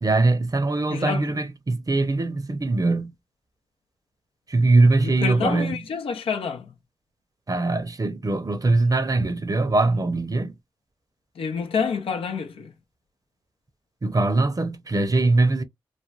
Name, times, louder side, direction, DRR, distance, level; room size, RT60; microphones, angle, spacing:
voice 1, 0.0-3.1 4.5-5.8 7.5-10.6 14.0-15.6, right 2 dB, 40° right, 0.7 m, -22 dB
voice 2, 0.9-1.4 5.0-6.7 11.4-12.7, left 5 dB, 90° left, 0.5 m, -28 dB
3.3 x 2.2 x 2.5 m
cardioid pair, 45°, 9 cm